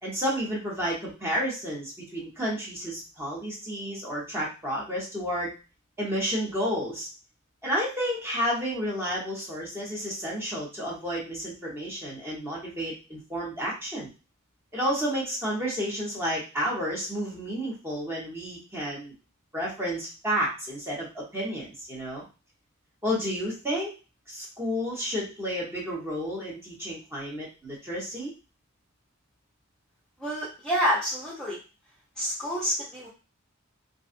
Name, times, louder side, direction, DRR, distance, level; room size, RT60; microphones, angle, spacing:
voice 1, 0.0-5.5 6.0-7.1 7.6-14.1 14.7-19.1 19.5-22.2 23.0-23.9 24.3-28.3, equal, 10° right, -5 dB, 1.0 m, -31 dB
voice 2, 30.2-31.6 32.2-33.1, equal, 5° left, -8 dB, 0.6 m, -28 dB
2.6 x 2.5 x 2.4 m, 0.32 s
head